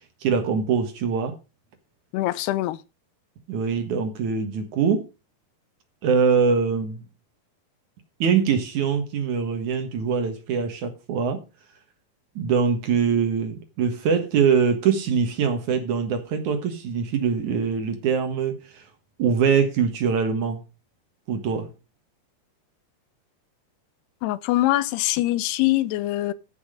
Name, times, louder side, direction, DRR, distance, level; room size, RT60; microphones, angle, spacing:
voice 1, 0.2-1.3 3.5-5.1 6.0-7.0 8.2-11.4 12.4-18.9 19.2-20.6 21.3-21.7, right 6 dB, 60° right, 2.4 m, -23 dB
voice 2, 2.1-2.8 24.2-26.3, left 16 dB, 90° left, 2.7 m, -23 dB
14.0 x 6.0 x 4.9 m
omnidirectional pair, 4.5 m